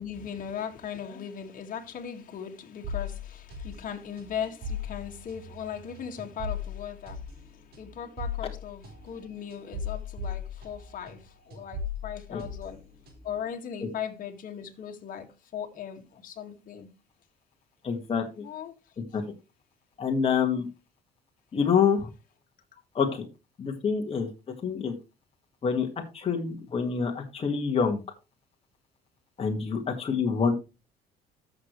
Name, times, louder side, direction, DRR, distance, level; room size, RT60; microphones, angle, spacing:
voice 1, 0.0-12.8 13.2-16.9 18.4-18.8 22.7-22.8, left 8 dB, 55° left, 1.9 m, -38 dB
sound 1, 2.8-11.2 11.5-13.4, left 5 dB, 65° right, 3.7 m, -38 dB
voice 2, 17.8-18.5 19.1-19.3 20.0-20.7 21.5-22.1 23.0-23.3 23.6-24.3 24.6-24.9 25.6-25.9 26.1-28.0 29.4-30.5, left 6 dB, 35° left, 1.8 m, -26 dB
13.0 x 6.6 x 3.2 m
cardioid pair, 110°, 17 cm